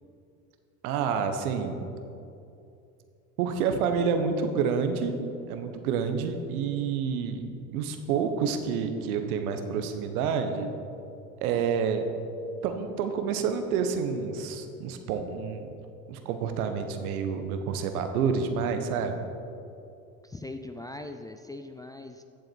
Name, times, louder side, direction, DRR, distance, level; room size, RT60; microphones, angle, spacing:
voice 1, 0.8-1.8 3.4-5.2 5.5-10.7 11.4-12.1 12.6-15.7 16.1-19.2, right 6 dB, 70° right, 7 dB, 1.3 m, -28 dB
voice 2, 20.2-22.2, left 2 dB, 10° left, 6 dB, 0.4 m, -40 dB
15.0 x 7.7 x 4.6 m, 2.6 s
hypercardioid pair, 75°, 45 cm